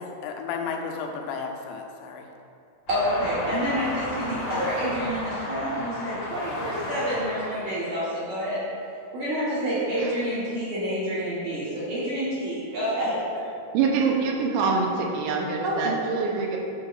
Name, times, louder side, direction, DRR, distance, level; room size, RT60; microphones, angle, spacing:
voice 1, 0.0-2.3, left 5 dB, 85° left, 2 dB, 3.0 m, -33 dB
sound 1, 2.9-7.8, left 2 dB, 70° left, 3.2 m, -33 dB
voice 2, 2.9-8.7 9.1-13.2 15.6-16.0, equal, 60° right, -9 dB, 2.0 m, -28 dB
voice 3, 13.7-16.6, right 4 dB, 85° right, -1 dB, 3.1 m, -25 dB
10.5 x 6.4 x 2.5 m, 2.6 s
omnidirectional pair, 5.1 m